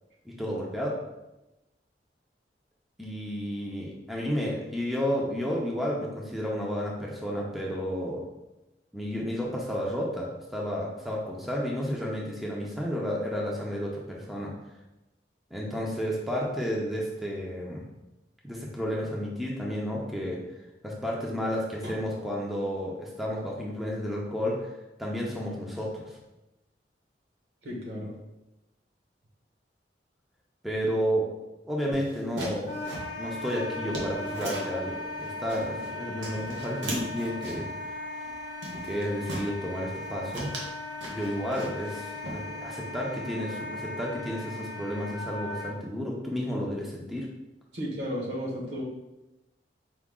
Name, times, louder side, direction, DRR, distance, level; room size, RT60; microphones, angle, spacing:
voice 1, 0.2-1.0 3.0-8.2 8.9-14.5 15.5-17.9 18.4-20.4 20.8-24.7 25.0-26.2 30.6-31.3 31.6-32.8 33.2-37.7 38.8-40.5 41.1-47.3, equal, ahead, -4 dB, 0.5 m, -32 dB
voice 2, 27.6-28.1 47.7-48.8, equal, 65° right, -3 dB, 1.1 m, -34 dB
sound 1, 31.9-34.8 35.2-35.9 36.2-37.8 38.2-38.4 38.6-39.5 39.9-40.1 40.3-42.0 42.2-42.8, right 1 dB, 90° right, 1.0 m, -38 dB
Wind instrument woodwind instrument, 32.7-45.7, left 2 dB, 45° left, 0.7 m, -38 dB
4.8 x 2.3 x 3.6 m, 0.98 s
head